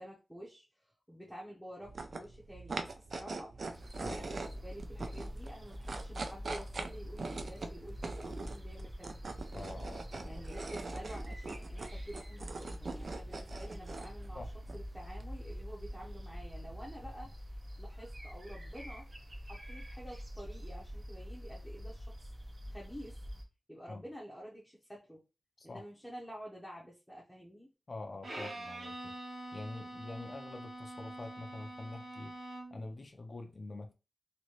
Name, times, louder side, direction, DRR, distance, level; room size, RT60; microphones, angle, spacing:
voice 1, 0.0-3.6 4.1-9.2 10.2-17.5 17.8-19.1 19.4-22.3 22.7-23.2 23.7-25.2 25.6-27.7, equal, ahead, 0.7 m, -49 dB
sound 1, 1.8-17.2, right 3 dB, 60° right, 0.4 m, -44 dB
sound 2, 3.7-23.4, equal, 40° right, 0.7 m, -45 dB
voice 2, 9.5-10.4 14.3-14.5 23.9-24.0 25.6-25.8 27.9-29.1 29.5-32.4 32.7-33.9, left 2 dB, 40° left, 0.4 m, -46 dB
Bowed string instrument, 28.2-32.9, right 1 dB, 85° right, 1.1 m, -45 dB
3.0 x 2.7 x 2.9 m
wide cardioid pair, 125°, 0 cm